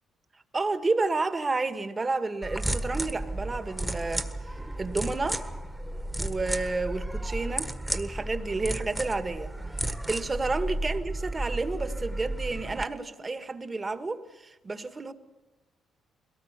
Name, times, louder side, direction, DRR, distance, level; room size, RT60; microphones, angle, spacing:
voice 1, 0.5-4.3 4.8-5.4 6.2-9.5 9.8-15.1, right 3 dB, 25° right, 9 dB, 1.7 m, -30 dB
sound 1, 2.4-12.8, right 1 dB, 5° right, 1.6 m, -33 dB
21.5 x 18.5 x 8.2 m, 1.1 s
cardioid pair, 90°, 0 cm